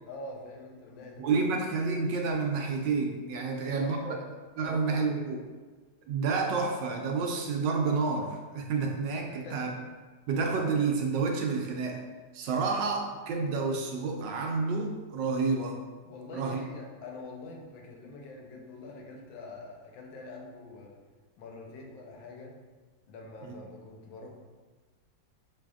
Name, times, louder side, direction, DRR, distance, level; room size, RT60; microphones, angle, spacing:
voice 1, 0.1-1.3 3.4-4.2 4.6-5.1 9.2-9.8 16.0-21.0 21.4-22.6 23.1-24.3, left 3 dB, 85° left, 0 dB, 1.5 m, -45 dB
voice 2, 1.2-4.0 4.6-5.4 6.1-9.7 10.3-12.0 12.3-15.8 16.3-16.6 23.4-23.6, right 4 dB, 75° right, 2 dB, 1.2 m, -29 dB
6.2 x 3.3 x 2.3 m, 1.4 s
omnidirectional pair, 2.1 m